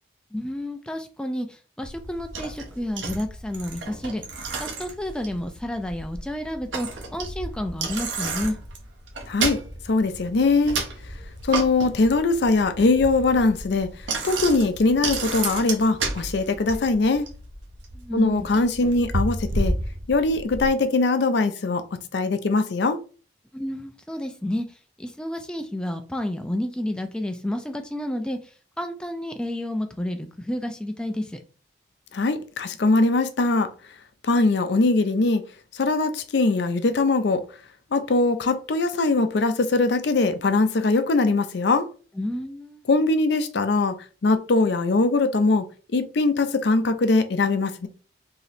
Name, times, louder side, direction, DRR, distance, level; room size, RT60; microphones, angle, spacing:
voice 1, 0.3-4.2 4.6-8.6 17.9-18.5 23.5-24.6 25.0-28.4 28.8-31.4 42.2-42.8, left 1 dB, 5° left, 0.3 m, -30 dB
Bicycle, 1.8-20.7, right 3 dB, 85° right, 0.9 m, -32 dB
voice 2, 9.3-9.6 9.9-10.8 11.4-17.2 18.1-19.7 20.1-21.8 22.1-23.0 32.1-33.7 34.2-35.4 35.7-37.4 37.9-41.9 42.9-44.0 44.2-47.9, left 3 dB, 65° left, 0.5 m, -21 dB
3.1 x 2.8 x 4.0 m
head